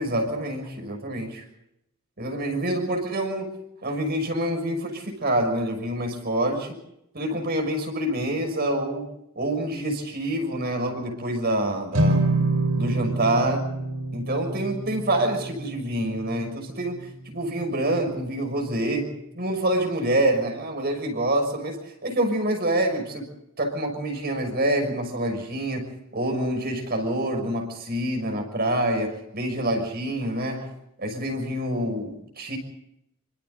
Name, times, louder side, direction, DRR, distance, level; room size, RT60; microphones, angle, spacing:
voice 1, 0.0-1.4 2.2-6.8 7.1-9.0 9.3-12.2 12.7-13.7 14.1-23.3 23.6-30.7 31.0-32.6, right 1 dB, 45° right, 4 dB, 6.3 m, -26 dB
sound 1, 11.9-18.4, right 2 dB, 75° right, 5.2 m, -28 dB
28.0 x 26.0 x 4.1 m, 0.81 s
head